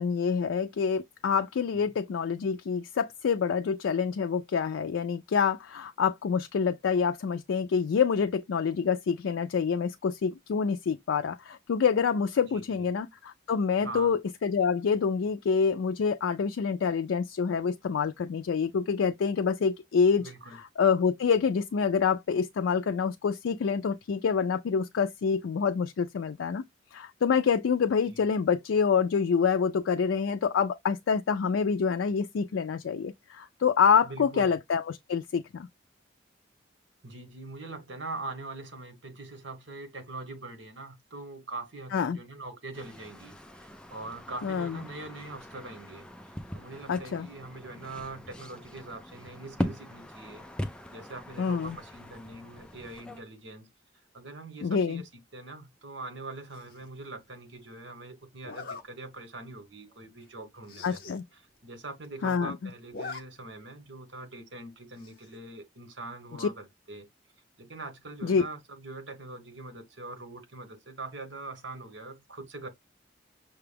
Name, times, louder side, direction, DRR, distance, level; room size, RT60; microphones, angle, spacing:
voice 1, 0.0-20.3 20.8-26.6 26.9-35.7 41.9-42.2 44.4-44.8 46.9-47.3 51.4-51.8 54.6-55.0 60.8-61.2 62.2-62.5 66.4-66.5 68.2-68.4, left 6 dB, 90° left, 0.4 m, -27 dB
voice 2, 12.5-12.8 13.8-14.1 20.2-20.6 28.1-28.2 34.0-34.5 37.0-50.4 50.9-53.7 54.1-61.0 61.3-67.1 67.6-72.7, right 2 dB, 70° right, 1.3 m, -43 dB
sound 1, 42.7-53.2, left 1 dB, 5° left, 0.4 m, -41 dB
Zipper (clothing), 56.5-56.9 58.4-58.8 59.4-59.6 59.9-60.0 60.2-60.3 60.6-61.2 61.6-61.7 61.8-62.4 62.7-63.2 63.6-63.7 65.0-65.4, left 4 dB, 50° left, 0.9 m, -42 dB
5.8 x 2.3 x 3.4 m
head